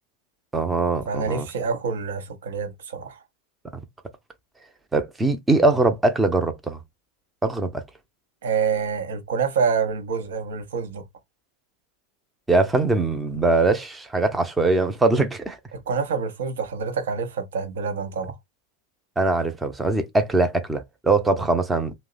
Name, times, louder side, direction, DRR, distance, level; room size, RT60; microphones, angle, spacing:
voice 1, 0.5-1.5 4.9-6.8 7.4-7.8 12.5-15.6 19.2-21.9, right 3 dB, 15° right, 0.6 m, -22 dB
voice 2, 1.1-3.2 8.4-11.0 15.7-18.4, right 5 dB, 70° right, 0.8 m, -27 dB
2.7 x 2.1 x 3.8 m
hypercardioid pair, 90°, 0 cm